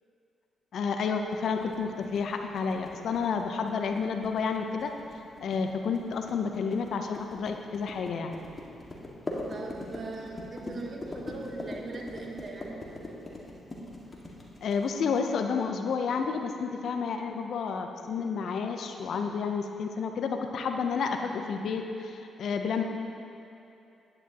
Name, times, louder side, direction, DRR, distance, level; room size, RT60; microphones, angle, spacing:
voice 1, 0.7-4.9 5.4-8.4 14.6-22.8, left 5 dB, 70° left, 5 dB, 0.7 m, -30 dB
sound 1, 1.4-15.2, left 1 dB, 35° left, 1.8 m, -41 dB
voice 2, 9.5-12.9, right 3 dB, 55° right, 0 dB, 1.3 m, -40 dB
10.5 x 9.8 x 2.9 m, 2.8 s
supercardioid pair, 50°, 0 cm